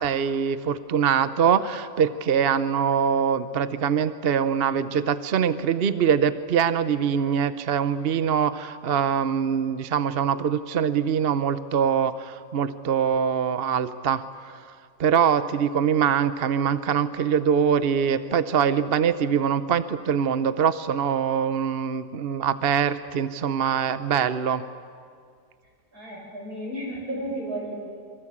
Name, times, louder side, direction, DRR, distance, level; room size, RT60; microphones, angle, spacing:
voice 1, 0.0-14.2 15.0-24.6, right 7 dB, 50° right, 13 dB, 0.9 m, -23 dB
voice 2, 25.9-27.7, right 1 dB, 75° right, -2 dB, 8.0 m, -33 dB
27.5 x 23.5 x 8.7 m, 2.1 s
omnidirectional pair, 1.6 m